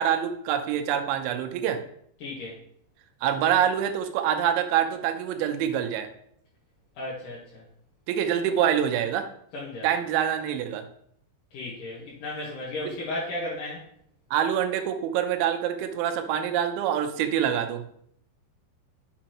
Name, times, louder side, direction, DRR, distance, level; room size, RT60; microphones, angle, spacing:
voice 1, 0.0-1.8 3.2-6.1 8.1-9.3 9.8-10.9 14.3-17.8, right 9 dB, 90° right, 7 dB, 3.2 m, -25 dB
voice 2, 2.2-2.6 7.0-7.6 9.5-9.9 11.5-13.9, left 2 dB, 65° left, -6 dB, 2.4 m, -34 dB
9.8 x 6.1 x 2.9 m, 0.67 s
omnidirectional pair, 5.2 m